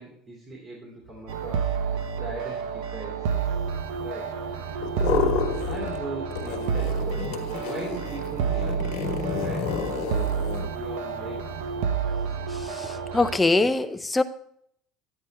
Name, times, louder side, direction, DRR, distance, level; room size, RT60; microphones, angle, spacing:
voice 1, 0.0-3.7 4.0-10.3 10.6-11.7, right 2 dB, 30° right, -3 dB, 2.6 m, -39 dB
sound 1, 1.3-13.4, right 7 dB, 90° right, 0.8 m, -29 dB
sound 2, 4.8-6.0 6.3-10.7, left 7 dB, 80° left, 1.2 m, -30 dB
voice 2, 12.5-14.2, left 2 dB, 10° left, 9 dB, 0.5 m, -24 dB
10.0 x 9.1 x 3.3 m, 0.69 s
cardioid pair, 145°, 0 cm